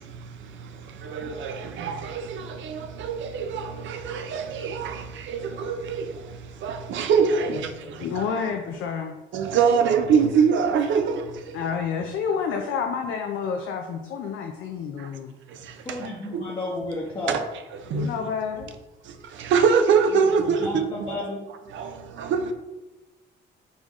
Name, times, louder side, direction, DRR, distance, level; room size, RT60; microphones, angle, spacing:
voice 1, 1.0-6.1 6.6-7.6 8.2-8.3 9.3-11.2 16.3-16.4 17.3-17.4 17.9-18.1 19.4-21.1 21.7-21.9 22.2-22.5, right 6 dB, 75° right, 0.5 m, -23 dB
voice 2, 7.3-7.9 9.5-9.8 15.8-17.4 20.1-21.4, left 1 dB, 25° left, 0.8 m, -33 dB
voice 3, 8.0-9.2 11.5-15.4 17.9-18.7, left 6 dB, 80° left, 0.5 m, -29 dB
4.0 x 3.6 x 3.0 m
cardioid pair, 90°, 20 cm